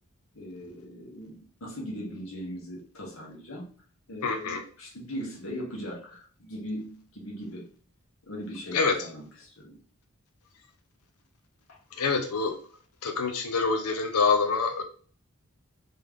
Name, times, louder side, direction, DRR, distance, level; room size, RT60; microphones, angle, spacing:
voice 1, 0.3-3.7 4.1-7.7 8.3-9.8 11.7-11.8, equal, 70° left, -3 dB, 1.4 m, -39 dB
voice 2, 4.2-4.6 8.7-9.0 12.0-12.6 13.0-14.8, left 4 dB, 90° left, 6 dB, 0.6 m, -26 dB
3.4 x 3.1 x 3.5 m, 0.43 s
head